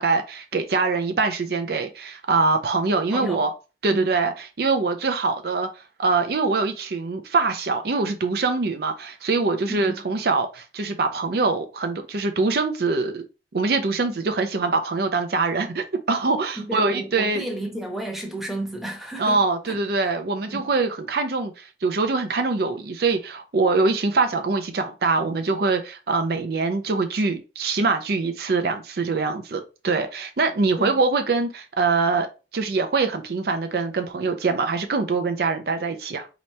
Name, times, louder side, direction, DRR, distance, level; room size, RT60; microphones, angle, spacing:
voice 1, 0.0-3.5 3.8-13.2 13.5-17.4 19.2-36.3, right 3 dB, 60° right, 0.5 m, -24 dB
voice 2, 3.1-3.4 3.9-4.1 9.7-10.0 16.6-19.8 20.5-20.7 30.8-31.0, right 1 dB, ahead, 0.9 m, -32 dB
4.1 x 3.0 x 3.2 m
head